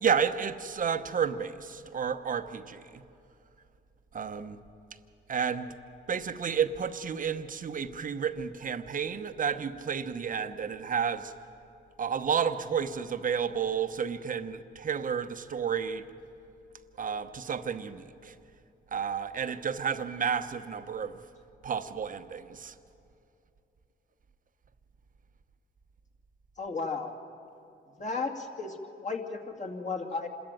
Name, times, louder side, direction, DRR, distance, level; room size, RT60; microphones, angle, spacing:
voice 1, 0.0-2.8 4.1-4.6 5.3-5.7 6.1-11.3 12.0-16.0 17.0-18.3 18.9-21.1 21.6-22.7, right 7 dB, 40° right, 10 dB, 0.9 m, -31 dB
voice 2, 26.6-27.1 28.0-30.3, left 4 dB, 35° left, 3 dB, 2.2 m, -34 dB
26.5 x 13.5 x 9.1 m, 2.7 s
cardioid pair, 90°, 20 cm